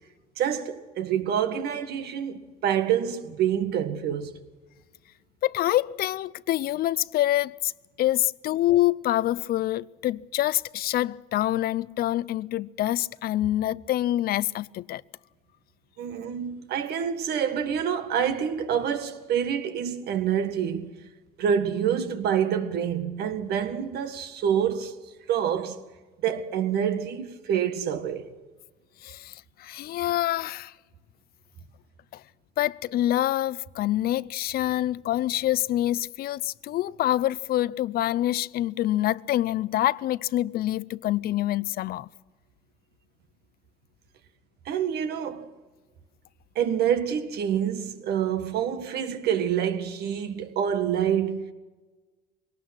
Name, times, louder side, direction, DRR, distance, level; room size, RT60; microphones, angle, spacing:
voice 1, 0.4-4.4 16.0-20.9 21.4-24.9 25.3-25.8 26.2-28.3 44.7-45.5 46.6-51.5, right 8 dB, 70° right, 1.8 m, -27 dB
voice 2, 5.4-7.7 8.0-15.0 29.0-30.7 32.1-32.2 32.6-42.1, left 14 dB, 65° left, 0.6 m, -26 dB
23.0 x 19.0 x 6.1 m
cardioid pair, 110°, 17 cm